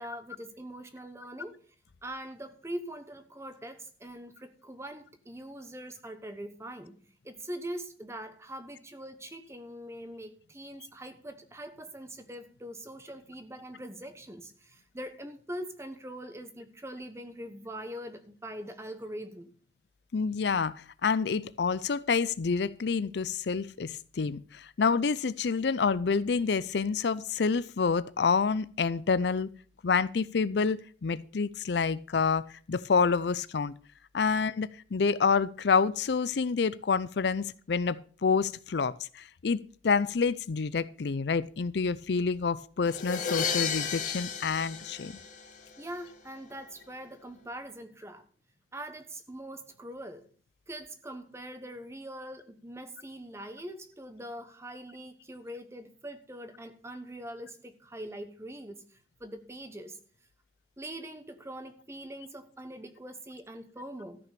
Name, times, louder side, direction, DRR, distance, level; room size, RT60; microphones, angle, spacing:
voice 1, 0.0-1.6 2.0-7.0 7.2-19.5 45.8-48.2 48.7-50.3 50.7-60.0 60.8-64.2, right 1 dB, 15° right, 1.2 m, -42 dB
voice 2, 20.1-29.5 29.8-33.7 34.1-45.1, left 5 dB, 60° left, 0.5 m, -28 dB
sound 1, 42.9-45.8, left 6 dB, 45° left, 1.9 m, -33 dB
13.5 x 6.1 x 6.8 m
head